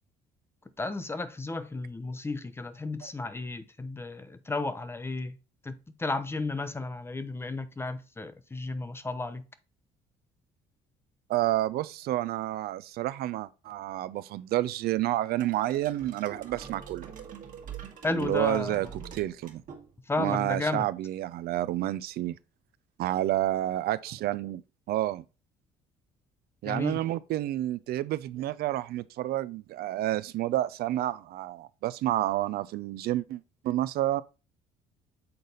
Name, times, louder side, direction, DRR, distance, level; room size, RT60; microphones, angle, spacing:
voice 1, 0.8-5.4 5.6-9.4 18.0-18.8 20.1-20.9 26.6-27.0, left 3 dB, 15° left, 0.6 m, -33 dB
voice 2, 11.3-17.1 18.1-18.9 19.1-19.6 20.2-22.4 23.0-24.6 24.9-25.2 26.6-34.2, right 14 dB, 70° right, 0.4 m, -29 dB
sound 1, 15.4-20.2, right 7 dB, 50° right, 1.5 m, -45 dB
6.7 x 4.0 x 3.9 m
cardioid pair, 110°, 17 cm